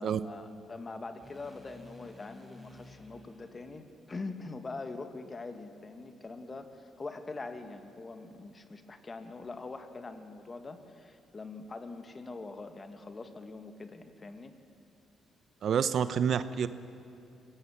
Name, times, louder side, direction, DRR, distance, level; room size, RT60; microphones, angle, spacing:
voice 1, 0.0-14.5, left 3 dB, 30° left, 8 dB, 1.7 m, -43 dB
sound 1, 1.2-5.4, equal, ahead, 5.9 m, -55 dB
voice 2, 15.6-16.7, right 8 dB, 60° right, 13 dB, 0.8 m, -28 dB
23.5 x 17.5 x 7.3 m, 2.8 s
cardioid pair, 90°, 0 cm